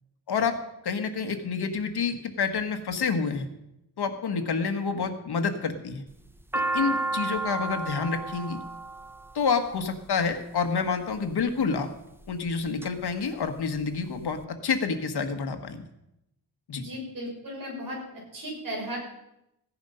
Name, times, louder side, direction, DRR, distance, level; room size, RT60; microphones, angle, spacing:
voice 1, 0.8-3.5 4.0-6.0 6.7-8.6 9.3-11.9 12.3-15.8 16.7-16.8, left 5 dB, 75° left, 7 dB, 1.5 m, -28 dB
sound 1, 6.1-10.3 11.2-11.6 12.2-12.9 13.2-13.3 13.5-14.3, right 2 dB, 5° right, 0.5 m, -32 dB
voice 2, 16.8-18.0 18.3-19.0, equal, 55° right, -2 dB, 6.5 m, -36 dB
16.0 x 10.5 x 5.6 m, 0.85 s
wide cardioid pair, 160°, 40 cm